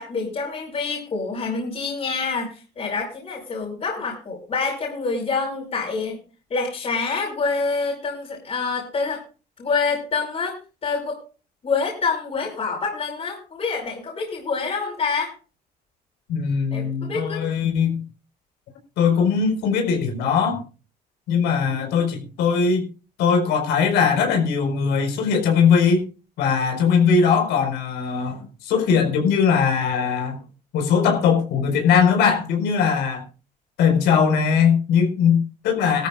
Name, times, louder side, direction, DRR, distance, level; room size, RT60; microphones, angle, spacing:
voice 1, 0.0-6.2 6.5-9.2 9.6-10.6 10.8-11.2 11.6-15.3 16.7-17.4, left 4 dB, 40° left, -3 dB, 5.2 m, -26 dB
voice 2, 16.3-18.0 19.0-20.6 21.3-22.9 23.2-26.0 26.4-30.4 30.7-33.2 33.8-36.1, left 6 dB, 90° left, 3 dB, 4.7 m, -20 dB
18.5 x 13.5 x 2.5 m, 0.33 s
cardioid pair, 110°, 17 cm